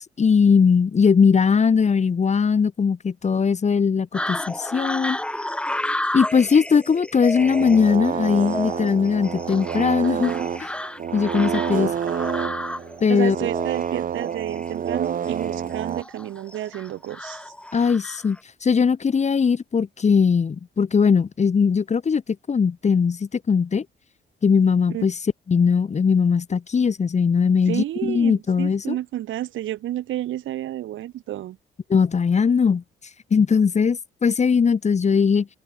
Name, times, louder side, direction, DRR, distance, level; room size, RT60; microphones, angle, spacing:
voice 1, 0.0-5.2 6.1-10.3 10.6-10.7 11.1-11.9 13.0-13.4 17.7-22.2 22.5-23.8 24.4-25.1 25.5-29.0 31.9-32.8 33.3-35.5, left 6 dB, 35° left, 1.3 m, -20 dB
sound 1, 4.1-18.4, left 1 dB, 5° left, 0.8 m, -32 dB
sound 2, 7.4-16.0, right 8 dB, 45° right, 0.8 m, -28 dB
voice 2, 13.1-17.4 24.9-25.1 27.7-31.6, right 13 dB, 80° right, 4.1 m, -30 dB
cardioid pair, 90°, 20 cm